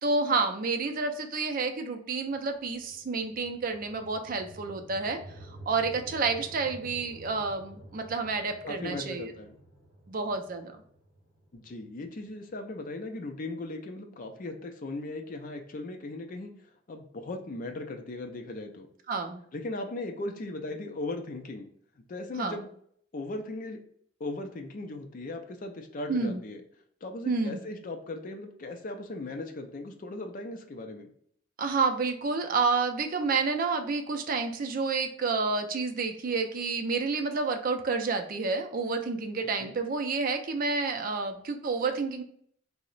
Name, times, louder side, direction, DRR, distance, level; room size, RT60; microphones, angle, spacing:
voice 1, 0.0-9.3 10.1-10.7 19.1-19.4 22.4-22.6 26.1-26.4 27.3-27.6 31.6-42.2, right 4 dB, 45° right, 6 dB, 0.4 m, -29 dB
sound 1, 2.2-12.5, right 1 dB, 25° right, 1.0 m, -50 dB
voice 2, 8.6-9.6 11.5-16.5 16.9-18.9 19.5-21.7 22.1-22.7 23.1-23.8 24.2-26.6 27.0-31.1 39.6-39.7, left 2 dB, 45° left, 5 dB, 0.4 m, -38 dB
2.8 x 2.0 x 3.9 m, 0.64 s
head